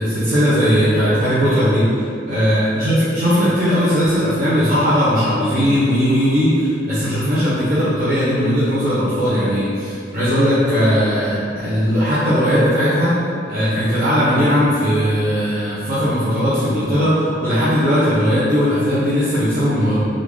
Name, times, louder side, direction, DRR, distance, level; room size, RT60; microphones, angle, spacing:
voice 1, 0.0-1.8 2.3-13.1 13.5-20.0, equal, 55° right, -13 dB, 0.8 m, -18 dB
3.7 x 2.5 x 3.1 m, 2.6 s
head